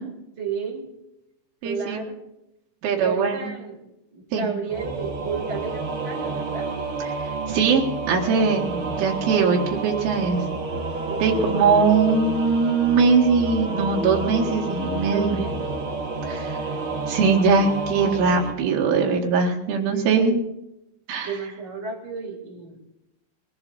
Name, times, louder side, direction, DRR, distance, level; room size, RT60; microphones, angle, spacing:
voice 1, 0.4-0.9 1.6-2.2 3.0-3.8 4.1-6.7 11.0-11.9 15.1-15.8 17.3-17.5 19.8-20.4 21.2-22.8, right 5 dB, 25° right, 0 dB, 3.5 m, -33 dB
voice 2, 1.6-2.0 2.8-3.5 4.3-4.5 7.1-10.4 11.2-15.4 16.3-16.6 17.1-20.4 21.1-21.3, right 5 dB, 85° right, -1 dB, 4.5 m, -21 dB
Singing / Musical instrument, 4.7-18.5, right 3 dB, 65° right, 1.3 m, -29 dB
21.0 x 19.5 x 2.7 m, 0.86 s
omnidirectional pair, 5.4 m